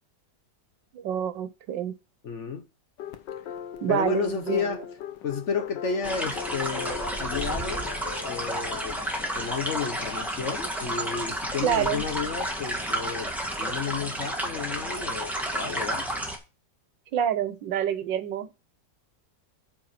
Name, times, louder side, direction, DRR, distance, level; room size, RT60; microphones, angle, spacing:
voice 1, 0.9-1.9 3.8-4.6 11.6-12.0 17.1-18.5, right 9 dB, 90° right, 1.6 m, -27 dB
voice 2, 2.2-2.6 3.9-4.8 5.2-7.9 8.2-13.3 13.6-16.1, left 6 dB, 55° left, 0.9 m, -32 dB
sound 1, 3.0-12.8, left 8 dB, 85° left, 1.6 m, -40 dB
sound 2, 6.0-16.4, right 1 dB, ahead, 1.7 m, -31 dB
9.0 x 4.6 x 5.7 m
omnidirectional pair, 1.9 m